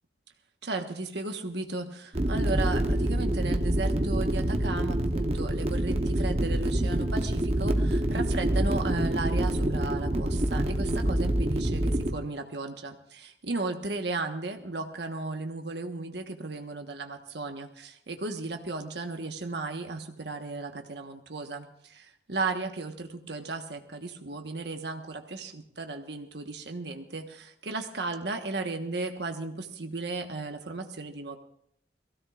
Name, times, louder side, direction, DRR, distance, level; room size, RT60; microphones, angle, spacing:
voice 1, 0.6-31.4, right 3 dB, 70° right, 5 dB, 1.3 m, -35 dB
sound 1, 2.1-12.1, right 1 dB, 35° right, 1.0 m, -26 dB
23.0 x 16.5 x 2.5 m, 0.70 s
head